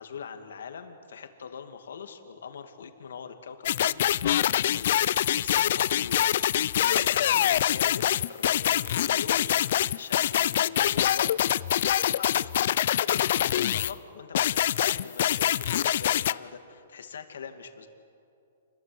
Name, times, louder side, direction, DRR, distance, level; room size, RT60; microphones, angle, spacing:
voice 1, 0.0-6.2 6.5-11.4 11.8-12.7 13.1-17.9, left 6 dB, 80° left, 7 dB, 2.5 m, -42 dB
sound 1, 3.6-13.9 14.3-16.3, left 11 dB, 55° left, 0.5 m, -25 dB
28.5 x 22.0 x 8.0 m, 2.5 s
hypercardioid pair, 155°, 0 cm